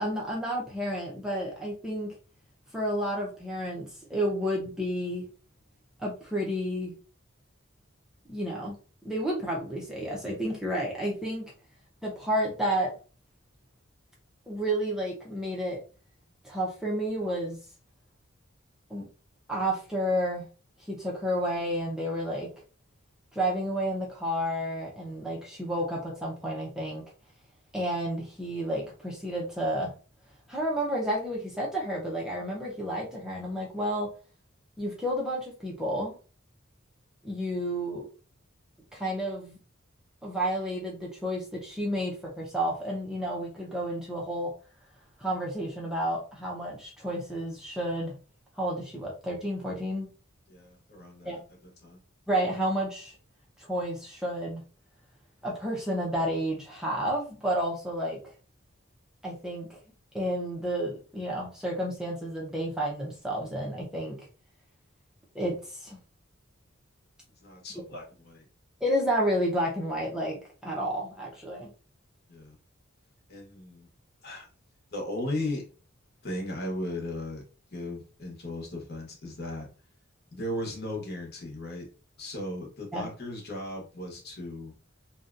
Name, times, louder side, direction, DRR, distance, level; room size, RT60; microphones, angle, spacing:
voice 1, 0.0-2.1 2.7-5.2 6.0-6.9 8.3-8.8 9.0-11.5 12.0-12.9 14.5-15.8 16.4-17.6 18.9-19.0 19.5-20.5 20.9-22.5 23.3-27.0 27.7-29.9 30.5-34.1 34.8-36.1 37.2-38.1 38.9-39.6 40.2-44.5 45.2-48.1 48.6-50.1 51.3-51.4 52.3-53.1 53.6-54.6 55.4-58.2 59.2-59.8 60.1-64.2 65.3-66.0 68.8-71.7 82.9-83.1, equal, 5° right, -4 dB, 0.5 m, -31 dB
voice 2, 50.5-52.0 67.4-68.4 72.3-72.6 73.3-73.9 74.2-74.5 74.9-75.6 76.2-77.4 77.7-79.7 80.3-81.9 82.2-84.7, left 1 dB, 50° left, 0 dB, 1.0 m, -36 dB
2.7 x 2.2 x 2.5 m, 0.36 s
head